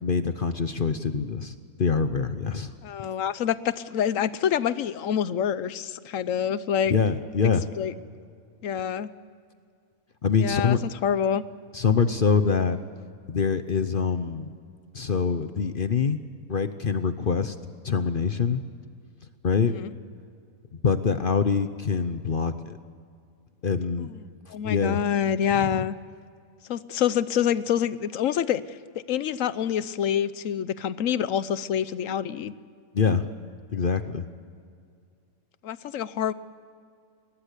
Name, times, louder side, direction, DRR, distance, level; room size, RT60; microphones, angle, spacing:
voice 1, 0.0-2.7 6.9-7.6 10.2-10.8 11.7-12.8 13.3-14.5 14.9-16.2 16.5-17.6 17.8-18.6 19.4-19.7 20.8-22.8 23.6-24.1 24.6-25.0 25.5-25.8 32.9-33.3 33.7-34.2, left 5 dB, 45° left, 10 dB, 0.8 m, -24 dB
voice 2, 2.8-6.9 7.8-7.9 8.6-9.1 10.4-11.4 19.7-19.9 24.0-24.1 24.5-25.9 26.7-32.5 35.6-36.3, left 9 dB, 65° left, 16 dB, 1.1 m, -26 dB
22.0 x 19.0 x 8.3 m, 2.2 s
omnidirectional pair, 1.6 m